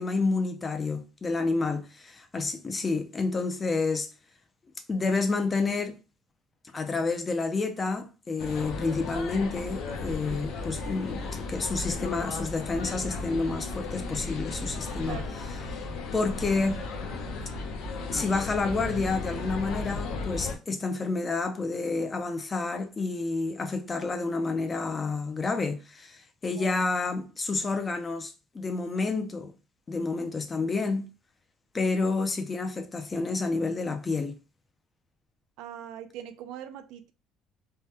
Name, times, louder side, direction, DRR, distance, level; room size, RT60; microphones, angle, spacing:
voice 1, 0.0-4.1 4.9-6.0 6.7-15.2 16.1-16.8 18.1-29.5 29.9-31.1 31.7-34.4, left 3 dB, 15° left, 0.4 m, -29 dB
sound 1, 8.4-20.6, left 3 dB, 65° left, 0.6 m, -35 dB
voice 2, 35.6-37.1, right 10 dB, 75° right, 0.4 m, -41 dB
3.5 x 2.1 x 2.7 m
cardioid pair, 180°, 0 cm